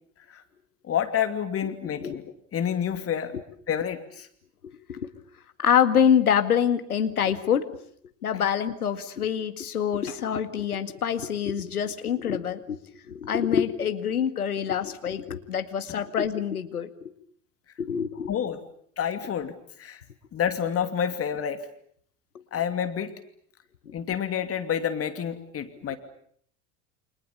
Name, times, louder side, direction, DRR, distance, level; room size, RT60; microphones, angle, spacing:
voice 1, 0.8-2.2 2.5-3.3 3.7-4.3 15.9-16.0 18.3-18.6 19.0-20.0 20.3-21.6 22.5-23.1 23.9-26.0, left 8 dB, 30° left, 9 dB, 2.7 m, -28 dB
voice 2, 4.6-5.1 5.6-7.7 8.2-12.8 13.1-17.1 17.8-18.3 22.3-22.4 23.9-24.0 25.9-26.0, left 8 dB, 85° left, 9 dB, 2.1 m, -26 dB
29.5 x 26.5 x 7.1 m, 0.63 s
figure-of-eight pair, 80°, 44 cm